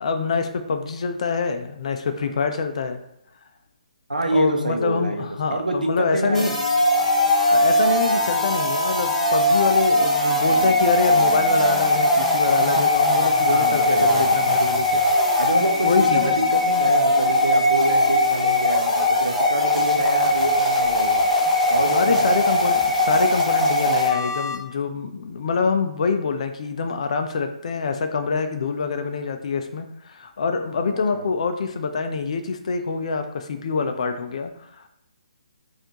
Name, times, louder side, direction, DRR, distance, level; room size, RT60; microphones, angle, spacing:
voice 1, 0.0-3.0 4.3-6.5 7.5-15.4 15.8-16.4 21.9-34.9, left 5 dB, 50° left, 7 dB, 0.5 m, -25 dB
voice 2, 4.1-5.2 5.5-6.6 12.7-12.8 13.5-14.6 15.4-21.2 21.7-22.4 30.9-31.2, right 2 dB, 85° right, 4 dB, 0.6 m, -26 dB
sound 1, 6.3-24.6, left 1 dB, 5° left, 0.7 m, -20 dB
4.2 x 2.5 x 2.9 m, 0.79 s
figure-of-eight pair, 140°, 4 cm